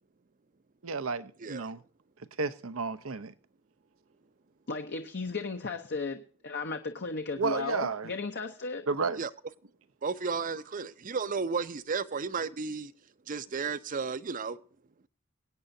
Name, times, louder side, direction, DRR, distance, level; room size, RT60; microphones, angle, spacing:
voice 1, 0.8-1.8 2.4-3.3 7.4-8.1 8.9-9.2, right 4 dB, 90° right, 0.8 m, -32 dB
voice 2, 4.7-8.9, left 4 dB, 55° left, 0.9 m, -35 dB
voice 3, 10.0-12.9 13.3-14.6, right 5 dB, 40° right, 0.6 m, -33 dB
24.0 x 9.0 x 2.7 m
head